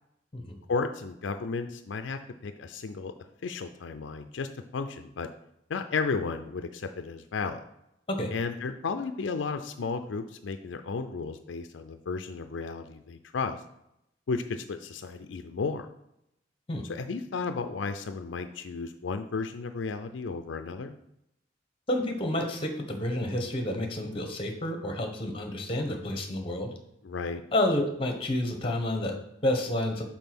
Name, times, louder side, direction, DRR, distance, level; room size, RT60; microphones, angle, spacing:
voice 1, 0.7-3.1 3.4-5.3 5.7-7.6 8.3-13.6 14.3-15.9 16.8-21.0 27.0-27.4, left 4 dB, 80° left, 8 dB, 0.4 m, -33 dB
voice 2, 21.9-26.7 27.5-30.0, left 1 dB, 30° left, 4 dB, 1.0 m, -29 dB
5.4 x 4.3 x 6.0 m, 0.81 s
head